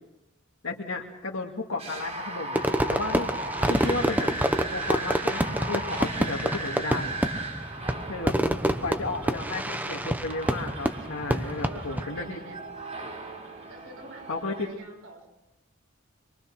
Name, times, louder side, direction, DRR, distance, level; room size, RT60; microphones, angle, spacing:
voice 1, 0.6-3.3 3.6-4.3 4.7-7.2 8.0-8.3 8.8-12.4 14.3-14.7, left 3 dB, 80° left, -1 dB, 2.3 m, -33 dB
sound 1, 1.8-14.7, right 2 dB, 35° right, 3.5 m, -37 dB
Fireworks, 2.5-12.1, right 1 dB, 10° right, 1.0 m, -27 dB
voice 2, 7.6-9.0 11.4-12.6 13.7-14.3 14.6-15.3, right 2 dB, 85° right, 1 dB, 6.6 m, -48 dB
25.5 x 23.5 x 6.2 m, 0.93 s
head